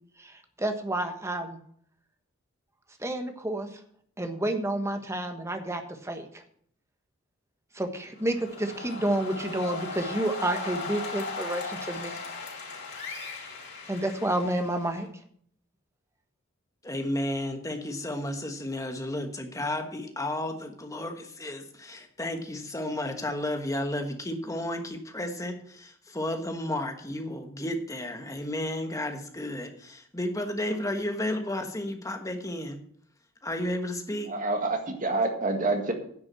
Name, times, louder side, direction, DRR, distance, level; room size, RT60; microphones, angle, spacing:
voice 1, 0.6-1.6 3.0-3.7 4.2-6.3 7.7-12.2 13.9-15.1, right 1 dB, 15° right, 6 dB, 1.2 m, -30 dB
sound 1, 8.2-15.1, left 3 dB, 55° left, 4.6 m, -38 dB
voice 2, 16.8-32.8 33.4-34.3, left 1 dB, 15° left, 5 dB, 1.3 m, -32 dB
voice 3, 34.3-35.9, right 2 dB, 40° right, 4 dB, 1.8 m, -27 dB
10.5 x 6.2 x 7.5 m, 0.63 s
head